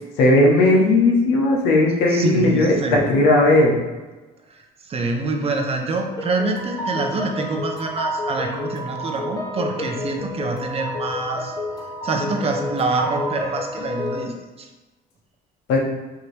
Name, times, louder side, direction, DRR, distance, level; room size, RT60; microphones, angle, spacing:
voice 1, 0.2-3.8 15.7-15.8, left 2 dB, 85° left, 0 dB, 0.9 m, -16 dB
voice 2, 2.1-3.2 4.9-11.5 12.0-14.7, right 3 dB, 35° right, 3 dB, 0.7 m, -26 dB
sound 1, 6.2-14.2, left 1 dB, 20° left, 0.6 m, -30 dB
4.5 x 2.8 x 3.2 m, 1.2 s
cardioid pair, 110°, 17 cm